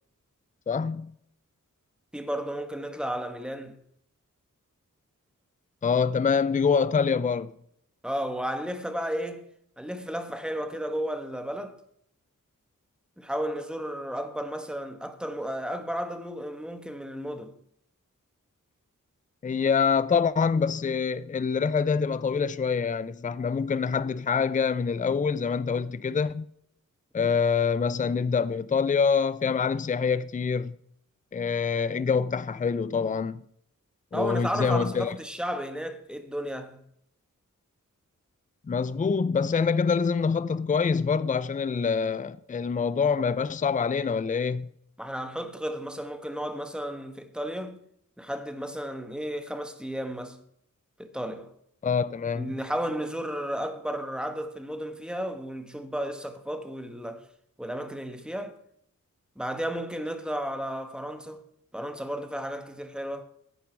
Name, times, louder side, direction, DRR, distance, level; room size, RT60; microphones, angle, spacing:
voice 1, 0.7-1.1 5.8-7.5 19.4-26.5 27.1-30.8 31.3-33.4 34.1-35.2 38.7-44.7 51.8-52.5, left 5 dB, 25° left, 0.4 m, -25 dB
voice 2, 2.1-3.8 8.0-9.5 9.8-11.7 13.2-17.6 34.1-36.8 45.0-47.8 48.2-50.4 51.0-51.5 52.3-57.3 57.6-58.5 59.4-61.4 61.7-63.3, equal, 5° right, 1.3 m, -33 dB
11.0 x 8.4 x 4.6 m
wide cardioid pair, 75°, 32 cm